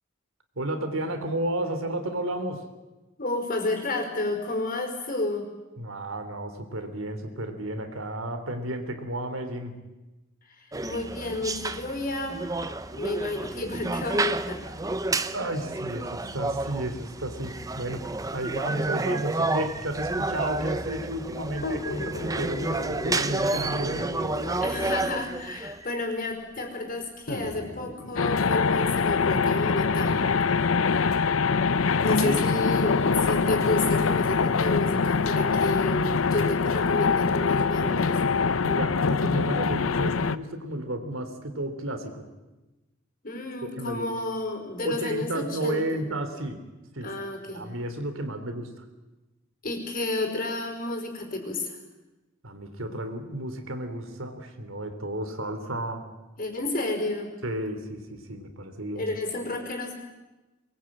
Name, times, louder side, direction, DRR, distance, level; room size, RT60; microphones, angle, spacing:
voice 1, 0.6-2.6 5.8-9.8 15.3-18.1 18.3-24.1 32.1-32.4 38.6-42.3 43.8-44.1 44.8-46.6 46.9-47.1 47.5-48.7 52.4-56.1 57.4-59.0, right 1 dB, 85° right, 7 dB, 3.1 m, -32 dB
voice 2, 3.2-5.5 10.6-12.4 12.9-14.7 24.5-30.2 32.0-38.2 43.2-46.0 47.0-47.7 49.6-51.8 56.4-57.3 58.9-59.9, left 2 dB, 45° left, 4 dB, 4.9 m, -31 dB
sound 1, 10.7-25.9, right 2 dB, 15° right, 0.8 m, -30 dB
sound 2, 21.6-25.2 26.1-26.2 27.3-31.2 32.2-32.3 33.0-35.6 36.1-36.2, left 2 dB, 65° left, 2.8 m, -39 dB
sound 3, 28.2-40.4, left 5 dB, 80° left, 0.7 m, -24 dB
23.0 x 20.5 x 8.8 m, 1.1 s
head